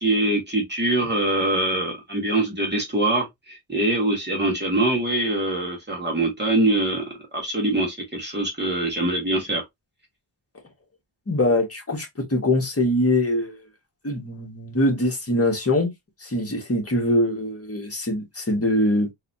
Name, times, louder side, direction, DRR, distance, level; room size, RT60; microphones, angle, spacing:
voice 1, 0.0-9.6, right 1 dB, 25° right, 1.6 m, -23 dB
voice 2, 11.3-13.6 14.0-15.9 16.2-19.1, left 1 dB, 35° left, 1.4 m, -23 dB
4.0 x 2.9 x 2.7 m
wide cardioid pair, 115°, 42 cm